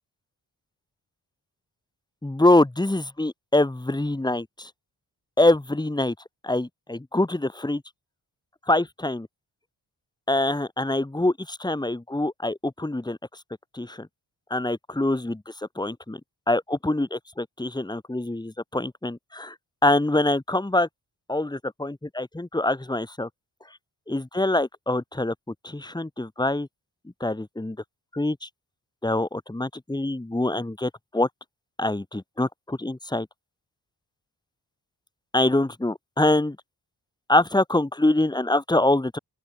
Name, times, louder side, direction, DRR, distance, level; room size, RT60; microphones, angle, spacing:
voice 1, 2.2-4.7 5.4-6.1 6.4-7.8 8.7-9.3 10.3-13.2 13.7-14.1 14.5-16.2 16.5-19.5 19.8-20.9 21.3-23.3 24.1-25.3 25.6-26.7 27.2-27.8 28.1-28.5 29.0-31.3 31.8-33.3 35.3-36.6 37.3-39.2, left 2 dB, 10° left, 1.1 m, -24 dB
open air
cardioid pair, 45°, 47 cm